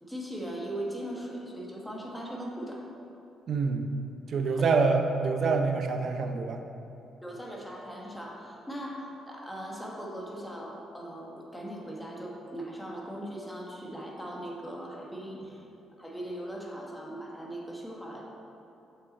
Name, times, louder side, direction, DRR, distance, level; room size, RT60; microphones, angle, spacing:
voice 1, 0.0-2.8 4.5-4.7 7.2-15.6 16.0-18.2, right 1 dB, 5° left, -2 dB, 1.3 m, -39 dB
voice 2, 3.5-3.9 4.3-6.6, right 4 dB, 60° right, 5 dB, 0.6 m, -26 dB
7.1 x 5.6 x 4.1 m, 2.9 s
cardioid pair, 90°, 0 cm